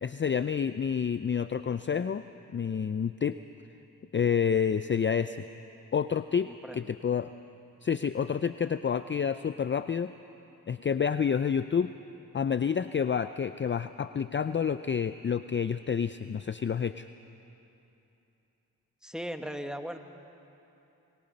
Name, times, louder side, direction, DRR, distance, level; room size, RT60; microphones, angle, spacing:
voice 1, 0.0-2.2 2.5-3.4 4.1-5.4 5.9-7.3 7.8-10.1 10.7-11.9 12.3-17.1, left 7 dB, 35° left, 12 dB, 0.5 m, -29 dB
voice 2, 6.4-7.0 19.0-20.0, equal, ahead, 6 dB, 1.6 m, -38 dB
26.0 x 22.0 x 5.3 m, 2.9 s
cardioid pair, 50°, 36 cm